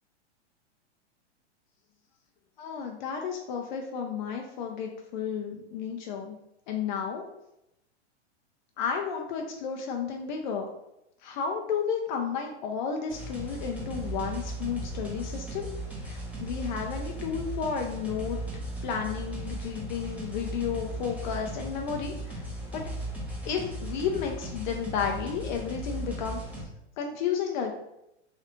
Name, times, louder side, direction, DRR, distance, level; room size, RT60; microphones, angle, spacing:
voice 1, 2.6-6.4 6.7-7.2 8.8-10.7 11.2-15.7 16.1-18.4 18.8-22.4 22.7-22.9 23.4-26.7 27.0-27.7, left 7 dB, 45° left, 2 dB, 0.4 m, -32 dB
sound 1, 13.1-26.6, right 1 dB, 5° right, 0.6 m, -37 dB
3.2 x 2.4 x 2.9 m, 0.85 s
hypercardioid pair, 125°, 35 cm